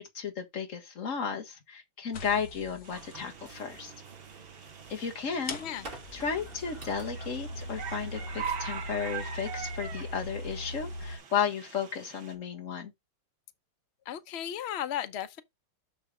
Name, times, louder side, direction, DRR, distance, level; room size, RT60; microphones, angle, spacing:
voice 1, 0.0-3.9 4.9-5.6 6.1-12.9, left 7 dB, 40° left, 1.7 m, -34 dB
sound 1, 2.1-3.2 4.5-4.6 5.4-11.2, left 1 dB, 55° left, 1.8 m, -40 dB
sound 2, 2.8-12.3, right 7 dB, 85° right, 2.4 m, -43 dB
sound 3, 2.9-8.6, right 3 dB, 25° right, 2.5 m, -49 dB
voice 2, 14.0-15.4, left 10 dB, 85° left, 0.5 m, -35 dB
6.7 x 6.7 x 3.6 m
omnidirectional pair, 2.2 m